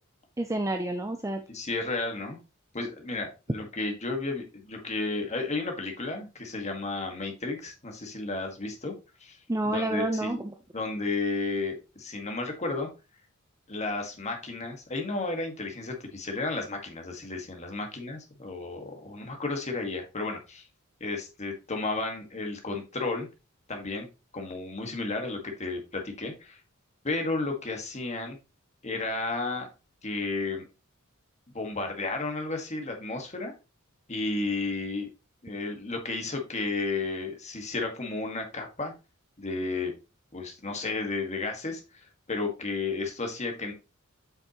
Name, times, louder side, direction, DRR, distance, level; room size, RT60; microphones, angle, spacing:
voice 1, 0.4-1.4 9.5-10.5, right 1 dB, 15° right, 5 dB, 0.6 m, -29 dB
voice 2, 1.5-2.4 2.7-8.9 9.2-9.4 9.6-10.4 10.7-12.9 13.7-20.7 21.0-23.3 23.7-24.1 24.3-26.6 27.0-28.4 28.8-29.7 30.0-30.6 31.5-33.5 34.1-35.1 35.4-38.9 39.4-39.9 40.3-43.7, left 3 dB, 30° left, 3 dB, 1.7 m, -33 dB
8.1 x 5.7 x 3.0 m, 0.29 s
head